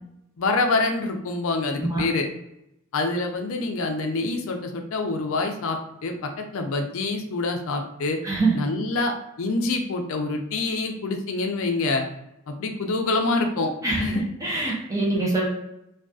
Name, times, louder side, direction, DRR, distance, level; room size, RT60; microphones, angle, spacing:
voice 1, 0.4-2.3 2.9-6.1 6.5-8.2 8.5-12.1 12.5-13.7 14.0-14.2, left 3 dB, 65° left, 3 dB, 0.4 m, -26 dB
voice 2, 13.8-15.5, right 2 dB, 15° right, -5 dB, 0.5 m, -24 dB
2.5 x 2.3 x 2.3 m, 0.84 s
head